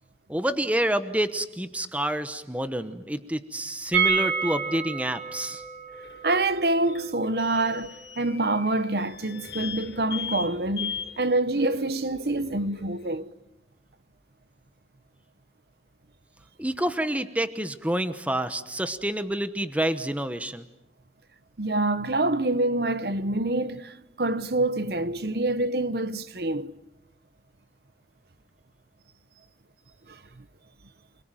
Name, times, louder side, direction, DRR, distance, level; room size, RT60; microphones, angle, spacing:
voice 1, 0.3-5.6 16.6-20.6, right 1 dB, 10° right, 1.1 m, -28 dB
sound 1, 3.9-9.7 10.0-10.1 10.3-10.4, right 6 dB, 75° right, 5.3 m, -30 dB
sound 2, 5.9-13.2, left 8 dB, 85° left, 5.6 m, -40 dB
voice 2, 6.2-13.3 21.6-26.7 30.1-30.4, right 2 dB, 60° right, 1.1 m, -26 dB
29.0 x 22.0 x 9.1 m
head